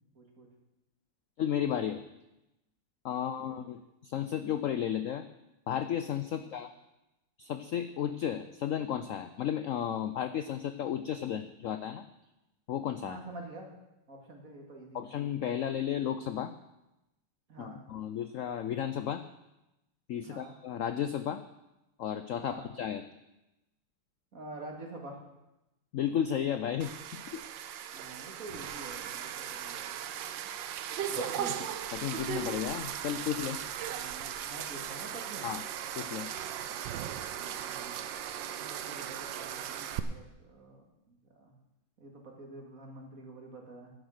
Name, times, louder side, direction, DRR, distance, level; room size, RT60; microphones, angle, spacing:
voice 1, 0.1-0.5 3.2-3.7 6.4-6.7 13.0-13.8 14.1-15.1 17.5-17.8 20.2-20.6 22.4-22.7 24.3-25.2 27.9-30.0 31.1-31.6 33.9-35.5 37.6-38.0 38.4-41.5 42.0-43.9, right 2 dB, 45° right, 1 dB, 2.5 m, -47 dB
voice 2, 1.4-2.0 3.0-5.2 5.7-6.7 7.4-12.0 12.7-13.2 14.9-16.5 17.6-19.2 20.1-21.4 22.0-23.0 25.9-27.4 31.2-31.3 31.9-33.6 35.4-35.6 36.0-36.3, left 9 dB, 80° left, 10 dB, 0.7 m, -33 dB
sound 1, 26.8-40.0, right 10 dB, 85° right, 1.4 m, -38 dB
11.0 x 10.0 x 6.5 m, 0.94 s
omnidirectional pair, 2.0 m